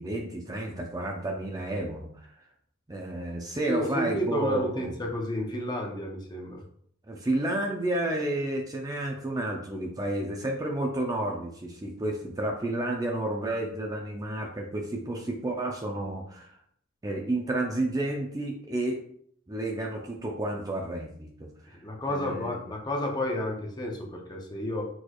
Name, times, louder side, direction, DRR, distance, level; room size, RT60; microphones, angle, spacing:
voice 1, 0.0-2.3 2.9-4.9 7.1-16.5 17.0-19.0 19.5-21.8 22.1-22.6, right 1 dB, 20° right, 1 dB, 0.5 m, -31 dB
voice 2, 3.7-6.6 21.7-24.8, left 1 dB, 20° left, 0 dB, 0.8 m, -31 dB
6.2 x 3.2 x 2.4 m, 0.63 s
head